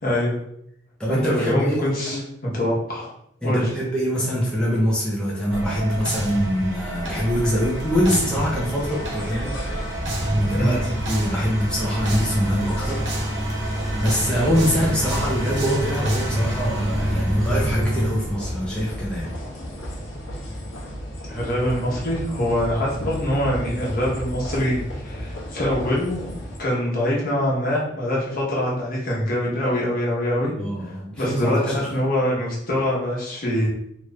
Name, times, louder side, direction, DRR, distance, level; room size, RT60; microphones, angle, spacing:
voice 1, 0.0-0.4 1.1-3.1 3.4-3.6 10.5-10.8 21.3-26.2 26.6-30.5 30.8-33.7, left 1 dB, 50° left, -4 dB, 1.1 m, -24 dB
voice 2, 1.0-2.2 3.4-9.5 10.0-10.8 11.1-13.1 13.3-13.7 14.0-19.3 30.6-31.9, equal, 5° left, -6 dB, 0.6 m, -24 dB
sound 1, 5.5-20.2, right 1 dB, 65° right, 0.8 m, -27 dB
sound 2, 7.0-26.6, equal, 75° left, 0.8 m, -34 dB
3.0 x 2.5 x 3.1 m, 0.74 s
head